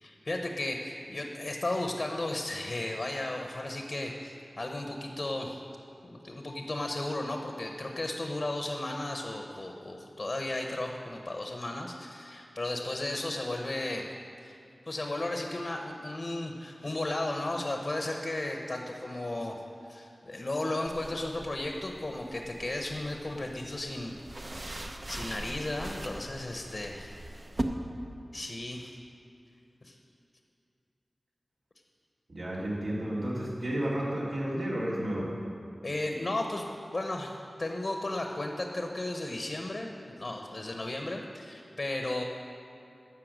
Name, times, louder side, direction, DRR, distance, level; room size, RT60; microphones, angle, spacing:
voice 1, 0.0-5.6 6.0-14.1 14.4-14.6 14.9-24.2 25.1-27.2 28.3-29.0 29.8-30.0 35.8-42.2, left 2 dB, 50° left, 3 dB, 0.9 m, -35 dB
sound 1, 20.9-27.6, right 1 dB, 40° right, 0.8 m, -41 dB
voice 2, 32.3-35.3, right 1 dB, 75° right, -7 dB, 3.2 m, -32 dB
13.0 x 5.6 x 7.5 m, 2.7 s
wide cardioid pair, 70°, 0 cm